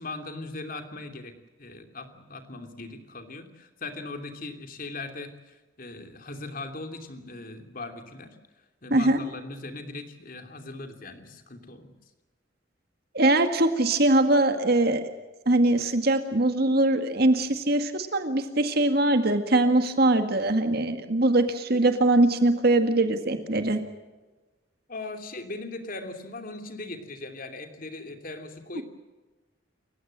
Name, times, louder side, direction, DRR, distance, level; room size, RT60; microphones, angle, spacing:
voice 1, 0.0-8.4 8.8-11.9 24.9-28.8, left 2 dB, 45° left, 6 dB, 2.9 m, -39 dB
voice 2, 13.1-15.1 15.5-23.8, right 2 dB, 55° right, 7 dB, 1.9 m, -22 dB
29.0 x 15.5 x 7.7 m, 1.2 s
head